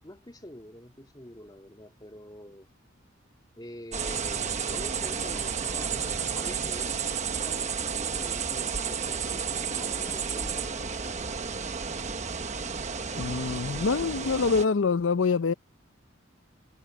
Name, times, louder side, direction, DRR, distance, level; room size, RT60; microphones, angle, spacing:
voice 1, 0.0-2.7 3.6-6.9 7.3-11.7, left 1 dB, 20° left, 2.0 m, -46 dB
sound 1, 3.9-14.7, right 6 dB, 35° right, 1.1 m, -32 dB
voice 2, 13.2-15.5, left 4 dB, 75° left, 0.6 m, -25 dB
head